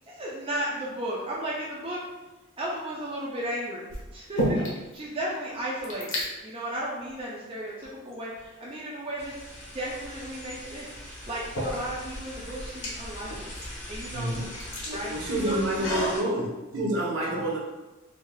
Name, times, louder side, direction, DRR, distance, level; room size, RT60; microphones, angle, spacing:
voice 1, 0.1-2.0 2.6-9.3 9.7-13.5 13.9-14.5 14.9-16.4 17.2-17.3, right 1 dB, 25° right, -5 dB, 0.4 m, -35 dB
sound 1, 2.8-3.1 3.9-5.0 5.3-5.4 5.6-6.3 7.1-7.2 7.8-8.7 10.4-10.5 11.2-16.2, equal, 85° left, 0.9 m, -33 dB
sound 2, 9.2-16.2, left 1 dB, 35° left, 0.7 m, -42 dB
voice 2, 14.1-14.4 14.8-16.5 16.7-17.6, right 1 dB, 65° right, -4 dB, 0.7 m, -28 dB
3.3 x 2.6 x 2.2 m, 1.1 s
head